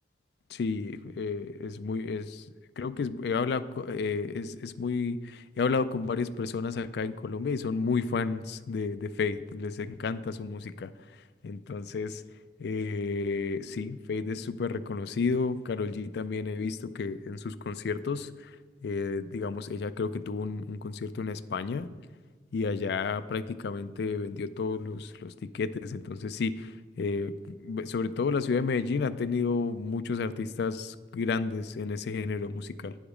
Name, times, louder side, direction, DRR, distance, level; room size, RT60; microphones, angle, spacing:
voice 1, 0.5-2.4 2.8-10.9 11.4-12.2 12.6-18.6 18.8-21.9 22.5-33.0, left 4 dB, 65° left, 13 dB, 0.4 m, -31 dB
9.6 x 5.0 x 5.0 m, 1.3 s
head